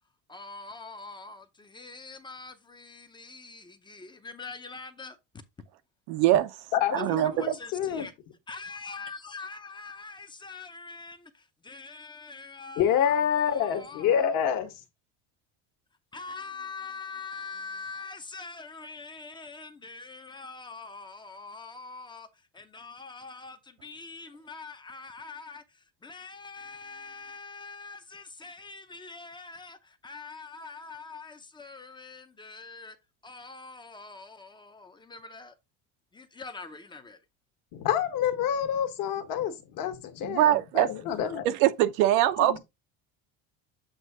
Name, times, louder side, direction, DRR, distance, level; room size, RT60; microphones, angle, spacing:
voice 1, 0.3-5.2 7.1-8.1 8.5-14.4 16.1-22.3 22.5-33.0 33.2-35.5 36.1-37.2, left 4 dB, 10° left, 0.6 m, -44 dB
voice 2, 6.1-6.5 6.9-7.3 40.2-40.9 41.4-42.6, right 13 dB, 85° right, 1.0 m, -22 dB
voice 3, 6.7-8.1 12.8-14.8 37.7-41.5 42.4-42.6, left 9 dB, 50° left, 1.5 m, -27 dB
8.1 x 2.7 x 4.9 m
cardioid pair, 155°, 42 cm